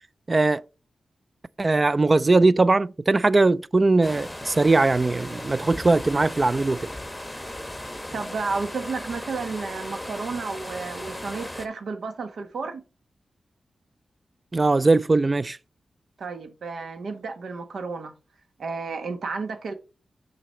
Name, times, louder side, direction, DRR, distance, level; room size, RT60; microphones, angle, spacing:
voice 1, 0.3-0.6 1.6-6.9 14.5-15.6, right 3 dB, 35° right, 0.4 m, -20 dB
sound 1, 4.0-11.7, left 1 dB, 10° left, 1.0 m, -37 dB
voice 2, 8.1-12.8 16.2-18.1 18.6-19.7, right 4 dB, 80° right, 1.2 m, -32 dB
6.1 x 4.0 x 5.6 m
cardioid pair, 75°, 0 cm